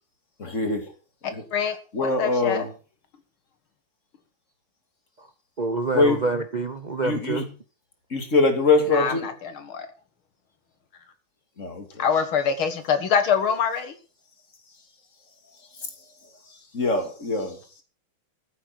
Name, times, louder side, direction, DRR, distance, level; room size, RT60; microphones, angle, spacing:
voice 1, 0.4-0.9 1.3-1.4 1.9-2.7 5.9-6.2 7.0-7.4 8.1-9.3 11.6-11.8 15.8-15.9 16.7-17.6, left 3 dB, 35° left, 5 dB, 2.9 m, -23 dB
voice 2, 1.2-2.7 8.9-9.9 12.0-14.0, left 7 dB, 75° left, 9 dB, 2.4 m, -25 dB
voice 3, 5.6-7.5, right 3 dB, 85° right, 8 dB, 0.4 m, -27 dB
14.5 x 8.0 x 6.2 m, 0.38 s
omnidirectional pair, 2.3 m